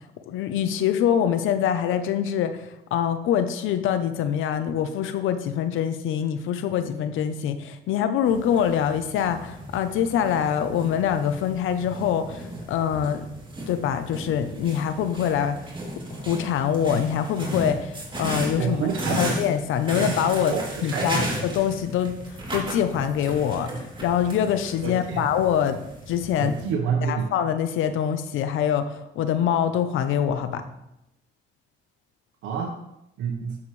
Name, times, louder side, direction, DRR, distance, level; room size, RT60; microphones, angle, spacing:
voice 1, 0.3-13.2 13.7-15.6 16.3-17.9 18.2-18.9 19.2-20.5 20.8-22.2 22.5-23.7 24.0-25.8 26.1-26.6 27.0-30.6, left 9 dB, 85° left, 10 dB, 0.8 m, -24 dB
sound 1, 8.3-26.7, right 1 dB, 25° right, 2.9 m, -34 dB
voice 2, 18.6-19.3 20.5-21.2 24.8-25.2 26.4-27.3 32.4-32.8 33.2-33.6, right 6 dB, 85° right, 1 dB, 1.2 m, -28 dB
12.5 x 7.3 x 3.2 m, 0.84 s
cardioid pair, 90°, 20 cm